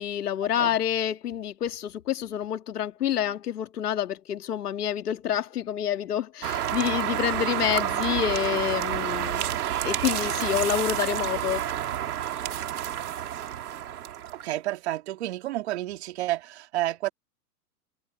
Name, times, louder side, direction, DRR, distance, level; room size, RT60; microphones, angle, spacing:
voice 1, 0.0-9.5 9.8-11.6, left 10 dB, 70° left, 2.3 m, -28 dB
sound 1, 6.4-14.5, right 11 dB, 65° right, 3.1 m, -29 dB
voice 2, 14.3-17.1, right 15 dB, 40° right, 3.3 m, -30 dB
hypercardioid pair, 170°, 48 cm